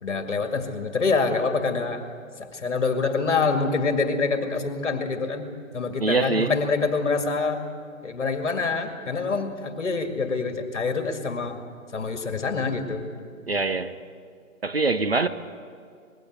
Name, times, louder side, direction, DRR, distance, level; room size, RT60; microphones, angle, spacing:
voice 1, 0.0-2.1 2.4-7.6 8.0-11.6 11.9-13.1, left 4 dB, 55° left, 2.2 m, -26 dB
voice 2, 6.0-6.5 13.5-14.0 14.6-15.3, right 3 dB, 45° right, 0.7 m, -23 dB
20.5 x 16.0 x 8.0 m
hypercardioid pair, 170°, 43 cm